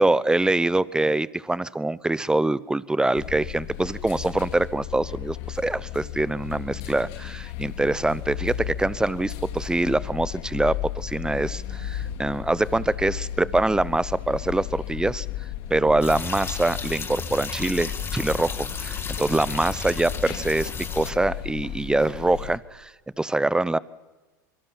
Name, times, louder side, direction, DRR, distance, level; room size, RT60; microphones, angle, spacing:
voice 1, 0.0-15.3 15.7-22.9 23.2-23.8, right 2 dB, 5° right, 19 dB, 0.8 m, -24 dB
sound 1, 3.2-22.6, left 12 dB, 60° left, 2.3 m, -34 dB
sound 2, 16.0-21.1, left 5 dB, 25° left, 2.5 m, -34 dB
25.5 x 23.5 x 6.0 m, 1.2 s
hypercardioid pair, 85°, 10 cm